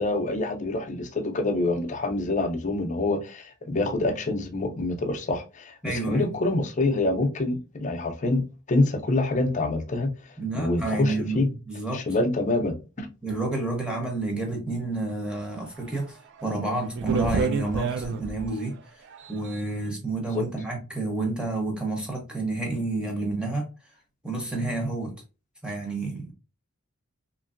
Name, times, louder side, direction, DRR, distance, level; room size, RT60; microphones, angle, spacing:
voice 1, 0.0-10.1 10.5-11.5 11.9-13.1 20.3-20.4, left 2 dB, 35° left, 0.4 m, -26 dB
voice 2, 5.8-6.4 10.4-12.0 13.2-18.8 19.3-23.7 24.2-25.1 25.6-26.3, right 2 dB, 5° right, 0.8 m, -30 dB
sound 1, 15.8-15.9 16.4-16.5 16.9-18.6 19.1-19.6, right 4 dB, 55° right, 0.3 m, -28 dB
2.8 x 2.6 x 2.4 m
head